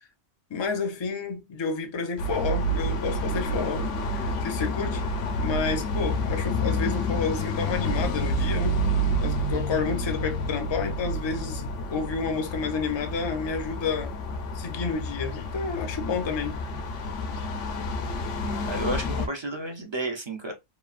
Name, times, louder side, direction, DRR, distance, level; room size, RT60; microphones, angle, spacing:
voice 1, 0.5-5.0 5.4-8.8 9.2-14.2 14.5-16.6, left 5 dB, 40° left, 0.4 m, -30 dB
sound 1, 2.2-19.3, equal, 90° left, 1.0 m, -29 dB
voice 2, 18.6-20.5, right 1 dB, 45° right, 0.3 m, -31 dB
3.0 x 2.4 x 2.4 m
omnidirectional pair, 1.2 m